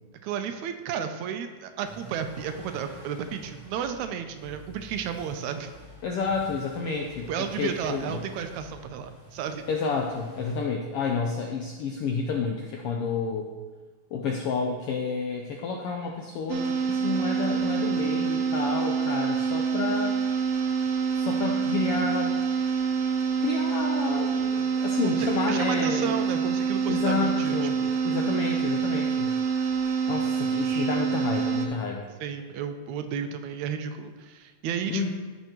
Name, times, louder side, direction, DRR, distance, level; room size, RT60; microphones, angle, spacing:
voice 1, 0.2-5.7 7.3-9.6 25.0-28.0 32.2-35.1, right 8 dB, 80° right, 7 dB, 2.0 m, -33 dB
sound 1, 1.8-10.6, right 1 dB, 15° left, 1.6 m, -48 dB
voice 2, 6.0-8.2 9.7-13.5 14.1-20.2 21.1-22.4 23.4-26.2 26.9-29.3 30.1-32.1 34.9-35.1, left 4 dB, 80° left, 1 dB, 1.3 m, -30 dB
sound 2, 16.5-31.7, right 6 dB, 65° right, 1.8 m, -26 dB
14.0 x 5.6 x 3.0 m, 1.3 s
omnidirectional pair, 3.4 m